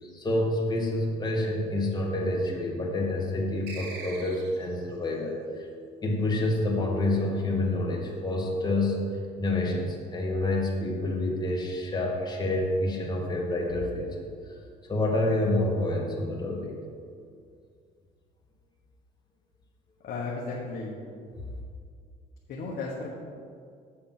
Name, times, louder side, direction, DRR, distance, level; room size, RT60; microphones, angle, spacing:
voice 1, 0.0-5.7 6.0-9.0 9.4-14.5 14.9-16.8, left 1 dB, 25° left, -1 dB, 1.8 m, -28 dB
sound 1, 3.7-4.8, right 3 dB, 80° right, 1.6 m, -42 dB
voice 2, 20.0-20.9 22.5-23.1, left 3 dB, 65° left, -3 dB, 1.3 m, -34 dB
7.6 x 6.4 x 6.0 m, 2.2 s
cardioid pair, 110°, 17 cm